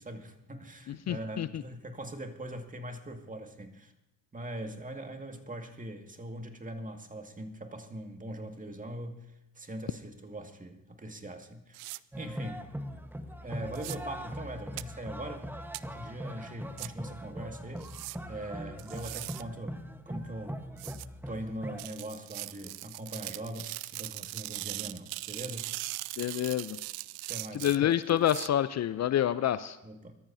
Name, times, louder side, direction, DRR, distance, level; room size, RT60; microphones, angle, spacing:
voice 1, 0.0-3.9 4.3-9.3 9.6-11.9 12.2-12.7 13.4-15.5 15.8-17.9 18.3-19.8 20.1-20.6 21.3-25.7 27.3-27.8 29.8-30.2, right 1 dB, 20° right, 5 dB, 2.1 m, -41 dB
voice 2, 0.9-1.5 26.2-26.8 27.6-29.8, left 11 dB, 45° left, 14 dB, 0.6 m, -28 dB
sound 1, 11.7-12.0 13.7-14.0 14.8-14.9 15.7-15.8 16.8-16.9 17.8-18.2 18.8-19.4 20.8-21.1 21.8-28.5, right 22 dB, 80° right, 0.5 m, -40 dB
sound 2, 12.1-21.9, equal, 5° right, 1.3 m, -41 dB
23.0 x 13.5 x 2.8 m, 0.93 s
hypercardioid pair, 60°, 38 cm